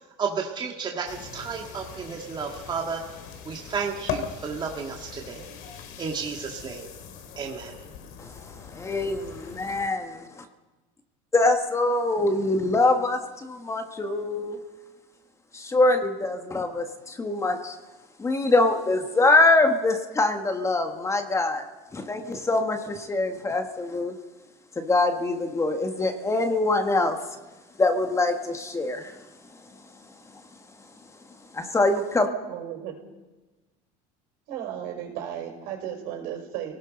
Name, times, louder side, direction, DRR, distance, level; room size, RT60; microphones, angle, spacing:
voice 1, 0.2-3.0 3.4-5.5 6.0-6.9 7.4-7.8, right 5 dB, 30° right, 1 dB, 2.0 m, -32 dB
sound 1, 1.1-9.9, left 7 dB, 70° left, 2.7 m, -40 dB
voice 2, 8.7-10.3 11.3-14.6 15.5-17.7 18.2-21.6 21.9-24.1 24.8-27.2 27.8-29.1 31.5-32.3, left 2 dB, 20° left, 6 dB, 1.6 m, -24 dB
voice 3, 32.0-32.9 34.5-36.8, right 10 dB, 70° right, 2 dB, 5.5 m, -35 dB
28.5 x 18.5 x 5.3 m, 1.2 s
supercardioid pair, 115°, 16 cm